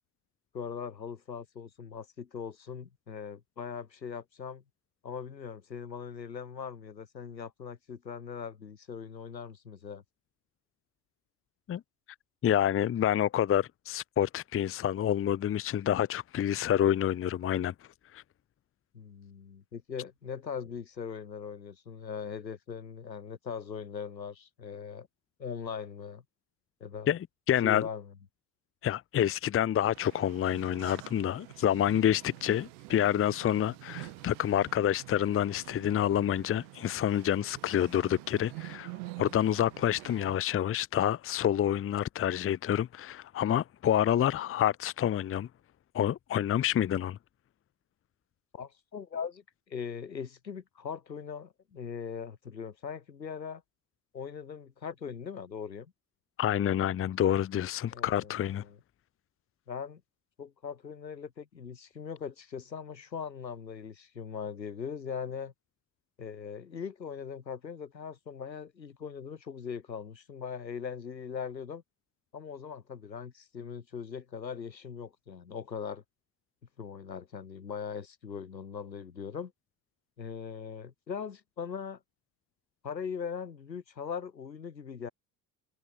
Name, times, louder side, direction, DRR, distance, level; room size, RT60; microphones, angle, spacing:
voice 1, 0.5-4.6 5.0-10.0 18.9-25.1 25.4-26.2 26.8-27.2 27.6-28.1 48.5-53.6 54.1-55.9 57.9-58.8 59.7-60.0 60.4-65.5 66.2-71.8 72.3-76.0 76.8-79.5 80.2-82.0 82.8-85.1, left 6 dB, 85° left, 4.6 m, -40 dB
voice 2, 12.4-17.7 18.1-18.2 27.1-27.2 27.5-27.9 28.8-38.9 39.2-45.5 45.9-47.2 56.4-58.6, left 10 dB, 25° left, 0.9 m, -28 dB
sound 1, 29.9-40.4, right 33 dB, 60° right, 3.0 m, -47 dB
figure-of-eight pair, 65°, 50 cm